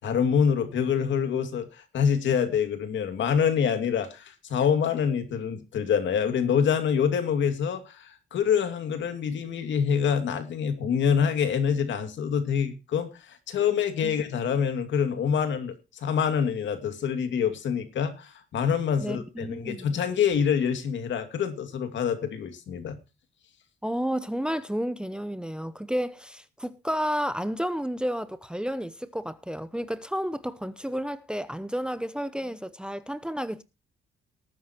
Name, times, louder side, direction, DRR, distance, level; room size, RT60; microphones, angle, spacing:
voice 1, 0.0-1.7 1.9-15.7 16.0-23.0, left 7 dB, 70° left, 2.5 m, -26 dB
voice 2, 19.0-20.0 23.8-33.6, equal, 5° right, 0.8 m, -31 dB
19.0 x 9.5 x 3.0 m
cardioid pair, 90°, 20 cm